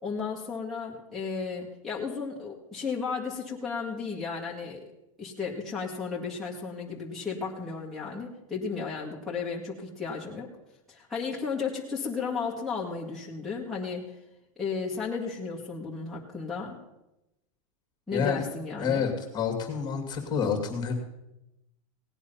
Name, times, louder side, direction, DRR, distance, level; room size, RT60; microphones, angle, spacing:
voice 1, 0.0-4.8 5.2-10.5 10.9-14.2 14.6-16.8 18.1-19.1, left 5 dB, ahead, -6 dB, 2.0 m, -34 dB
voice 2, 18.1-18.4 18.8-21.0, left 6 dB, 25° left, 4 dB, 2.4 m, -28 dB
18.0 x 9.4 x 5.7 m, 0.92 s
supercardioid pair, 150°, 18 cm